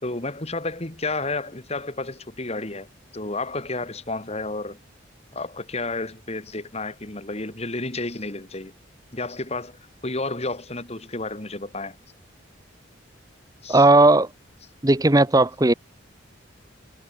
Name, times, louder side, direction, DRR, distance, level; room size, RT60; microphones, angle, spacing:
voice 1, 0.0-2.9 3.1-4.8 5.3-8.7 9.1-12.0 13.6-13.8, left 2 dB, 35° left, 2.6 m, -31 dB
voice 2, 13.7-14.3 14.8-15.7, right 2 dB, 20° right, 1.0 m, -16 dB
head